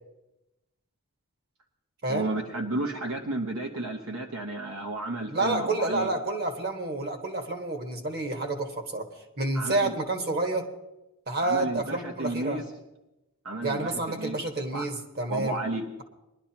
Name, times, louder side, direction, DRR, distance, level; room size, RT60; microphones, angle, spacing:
voice 1, 2.1-6.1 9.5-10.0 11.4-12.7 13.4-14.4 14.7-14.8 15.3-15.9, right 2 dB, 70° right, 2 dB, 1.1 m, -32 dB
voice 2, 5.3-9.1 9.4-10.7 11.3-12.6 13.6-15.6, right 2 dB, 45° right, 4 dB, 1.7 m, -29 dB
22.0 x 11.5 x 2.9 m, 0.95 s
head